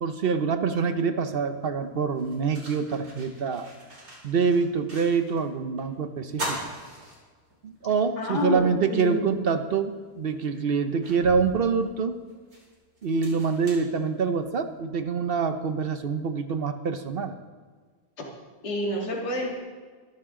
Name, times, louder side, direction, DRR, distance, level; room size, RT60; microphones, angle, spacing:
voice 1, 0.0-3.7 4.2-6.6 7.6-12.2 13.0-17.4, right 5 dB, 50° right, 9 dB, 0.7 m, -26 dB
sound 1, 1.5-1.6 2.1-5.5 5.8-5.9 6.3-7.8 8.2-8.3 9.7-9.8 10.4-14.6, right 1 dB, 75° right, 5.8 m, -40 dB
voice 2, 8.2-9.4 18.6-19.6, left 1 dB, 75° left, -2 dB, 2.7 m, -29 dB
22.5 x 12.0 x 3.8 m, 1.5 s
omnidirectional pair, 1.7 m